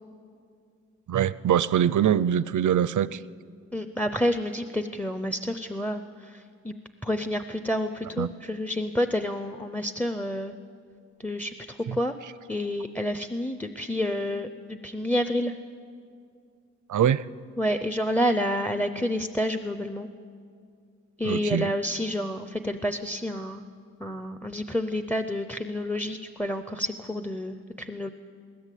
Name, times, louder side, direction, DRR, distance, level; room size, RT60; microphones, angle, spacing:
voice 1, 1.1-3.2 8.2-8.3 16.9-17.2 21.2-21.7, right 9 dB, 90° right, 18 dB, 0.5 m, -23 dB
voice 2, 3.7-6.7 7.0-10.5 11.2-12.1 12.5-15.5 17.6-20.1 21.2-23.6 24.0-28.1, equal, 5° left, 9 dB, 0.5 m, -29 dB
21.0 x 18.5 x 8.3 m, 2.3 s
wide cardioid pair, 180°, 29 cm